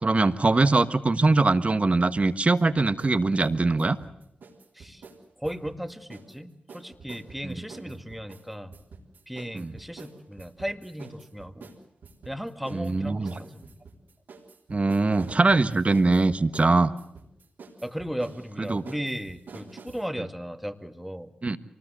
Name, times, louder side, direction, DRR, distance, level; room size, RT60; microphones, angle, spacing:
voice 1, 0.0-4.0 7.4-7.5 9.5-9.8 12.7-13.4 14.7-16.9 18.6-18.8 21.4-21.6, right 3 dB, 40° right, 12 dB, 1.4 m, -22 dB
sound 1, 2.2-3.2 3.4-6.4 6.7-20.1, right 4 dB, 80° right, 3.7 m, -48 dB
voice 2, 5.4-8.7 9.3-11.7 12.3-13.8 17.8-21.3, equal, 5° right, 8 dB, 1.9 m, -36 dB
24.5 x 19.5 x 8.1 m, 0.76 s
cardioid pair, 45°, 3 cm